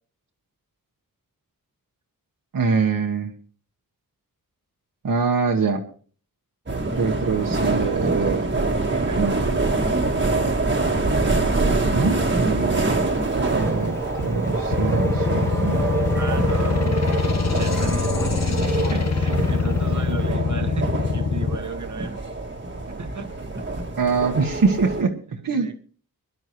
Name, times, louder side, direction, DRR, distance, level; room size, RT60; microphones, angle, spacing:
voice 1, 2.5-3.3 5.0-5.8 6.9-8.4 9.2-9.4 11.9-12.8 13.5-15.9 24.0-25.7, right 5 dB, 70° right, 2 dB, 1.4 m, -24 dB
sound 1, 6.7-25.0, right 2 dB, 35° right, 1.6 m, -25 dB
voice 2, 8.9-9.4 16.1-17.2 17.5-22.2 22.9-23.4 25.4-25.7, right 4 dB, 55° right, 6 dB, 1.3 m, -34 dB
Race car auto racing / Accelerating revving vroom, 13.1-20.3, left 1 dB, 10° left, 0.8 m, -34 dB
sound 2, 14.7-21.6, left 5 dB, 50° left, 0.8 m, -24 dB
23.0 x 11.0 x 3.0 m, 0.43 s
wide cardioid pair, 105°, 35 cm